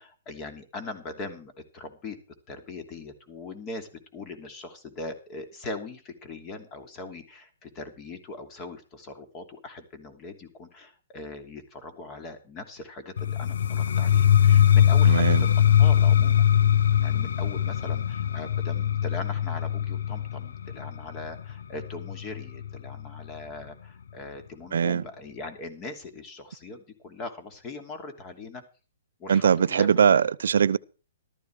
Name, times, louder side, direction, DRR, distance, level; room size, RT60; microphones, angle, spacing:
voice 1, 0.0-2.2 2.5-15.5 15.8-16.5 17.0-28.6 29.2-30.3, left 3 dB, 25° left, 2.9 m, -40 dB
sound 1, 13.2-23.0, left 9 dB, 75° left, 0.8 m, -22 dB
voice 2, 15.0-15.5 24.7-25.0 29.3-30.8, right 7 dB, 75° right, 0.6 m, -21 dB
14.0 x 13.0 x 4.8 m
hypercardioid pair, 145°, 0 cm